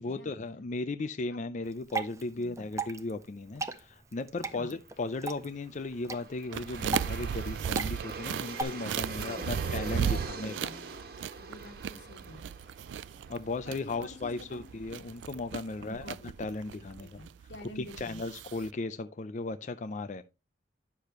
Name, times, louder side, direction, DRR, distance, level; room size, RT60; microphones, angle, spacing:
voice 1, 0.0-10.1 10.4-10.5 13.3-16.1 16.4-17.1 18.0-20.2, left 3 dB, 45° left, 0.4 m, -36 dB
Water / Drip, 1.6-8.6, right 3 dB, 15° right, 0.6 m, -38 dB
voice 2, 2.3-2.7 4.5-4.8 9.1-9.7 10.0-10.9 11.4-12.7 13.6-14.6 15.8-16.4 17.0-18.2, left 1 dB, 85° left, 2.0 m, -48 dB
Aircraft, 5.6-16.7, right 3 dB, 55° right, 1.4 m, -45 dB
sound 1, 6.5-18.7, right 8 dB, 85° right, 0.3 m, -36 dB
9.9 x 6.6 x 3.0 m
head